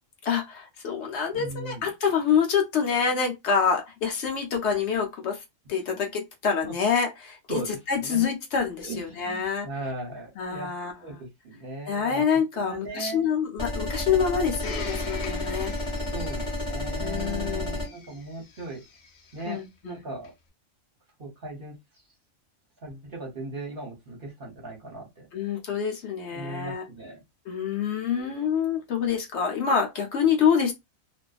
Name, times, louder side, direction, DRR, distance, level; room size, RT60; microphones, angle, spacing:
voice 1, 0.2-5.4 5.7-7.6 7.9-9.7 10.4-10.9 11.9-15.7 17.0-18.0 19.5-20.0 25.3-26.8 27.5-30.7, left 7 dB, 65° left, 0.8 m, -26 dB
voice 2, 1.3-1.8 6.6-6.7 7.5-8.2 8.8-10.7 11.0-12.2 12.5-13.3 16.1-18.8 19.3-20.3 21.2-21.8 22.8-25.3 26.3-27.2, right 2 dB, 50° right, 0.8 m, -38 dB
sound 1, 13.6-17.9, left 1 dB, 25° left, 1.0 m, -31 dB
Domestic sounds home sounds, 14.6-19.5 20.2-20.3, left 6 dB, 90° left, 0.4 m, -42 dB
2.5 x 2.3 x 2.3 m
omnidirectional pair, 1.4 m